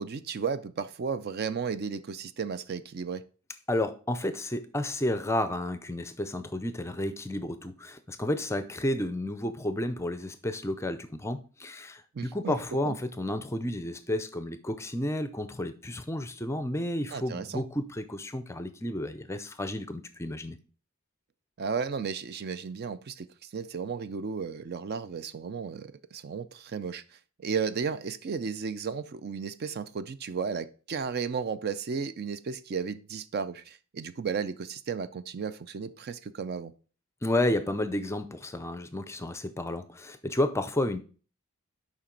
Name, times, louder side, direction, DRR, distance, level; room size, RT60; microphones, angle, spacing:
voice 1, 0.0-3.2 12.1-12.6 12.9-13.0 17.1-17.6 21.6-36.7, right 5 dB, 45° right, 0.4 m, -34 dB
voice 2, 3.7-20.6 37.2-41.0, left 1 dB, 10° left, 0.5 m, -31 dB
7.2 x 5.2 x 3.8 m
head